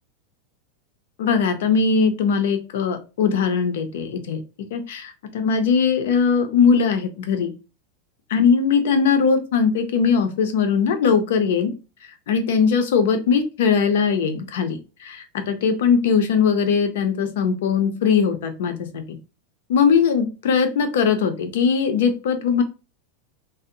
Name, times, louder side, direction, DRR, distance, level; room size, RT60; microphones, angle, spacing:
voice 1, 1.2-4.4 4.7-7.5 8.3-11.7 12.3-19.0 19.7-22.6, left 6 dB, 80° left, 7 dB, 0.5 m, -20 dB
2.6 x 2.0 x 2.6 m, 0.31 s
supercardioid pair, 145°, 0 cm